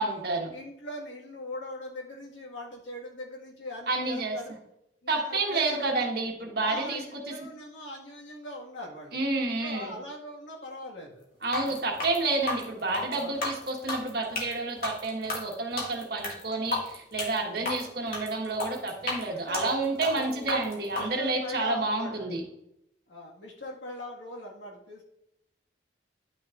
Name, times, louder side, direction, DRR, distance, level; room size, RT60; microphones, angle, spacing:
voice 1, 0.0-0.5 3.9-4.4 5.1-7.3 9.1-9.9 11.4-22.4, right 3 dB, 55° right, 1 dB, 1.4 m, -30 dB
voice 2, 0.5-4.5 5.0-6.1 6.6-9.2 9.6-11.2 11.7-11.9 13.1-13.5 19.3-22.3 23.1-25.0, left 1 dB, 85° left, -1 dB, 1.8 m, -41 dB
sound 1, 11.4-21.1, left 3 dB, 50° left, 2.0 m, -34 dB
10.5 x 6.2 x 2.5 m, 0.82 s
head